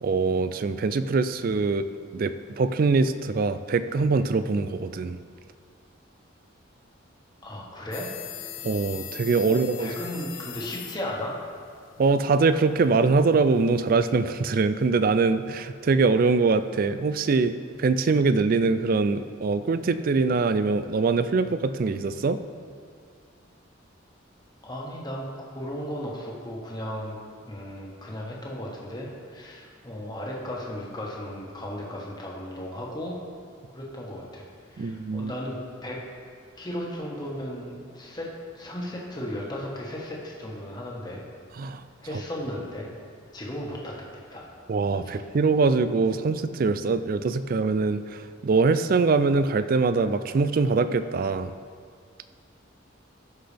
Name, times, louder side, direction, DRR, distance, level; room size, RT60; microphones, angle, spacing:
voice 1, 0.0-1.9 2.1-5.2 8.6-9.9 12.0-17.5 17.8-22.4 34.8-35.3 41.6-41.8 44.7-51.5, right 4 dB, 45° right, 11 dB, 0.3 m, -23 dB
voice 2, 7.4-8.1 9.5-11.4 24.6-27.2 27.4-33.2 33.7-36.0 36.6-38.3 38.5-41.2 42.0-42.9 43.3-44.0 44.3-44.5 45.0-45.2, left 1 dB, 20° left, -3 dB, 1.4 m, -35 dB
sound 1, 7.9-13.9, left 11 dB, 75° left, 0.7 m, -42 dB
15.0 x 5.9 x 3.4 m, 2.1 s
head